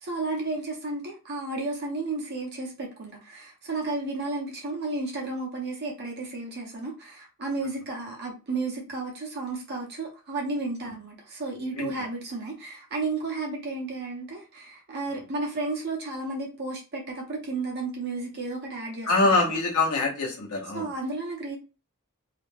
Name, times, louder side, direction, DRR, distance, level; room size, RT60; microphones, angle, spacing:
voice 1, 0.0-19.5 20.7-21.6, right 3 dB, 50° right, 0.7 m, -33 dB
voice 2, 19.0-20.9, left 3 dB, 90° left, 0.8 m, -24 dB
2.4 x 2.1 x 3.1 m
head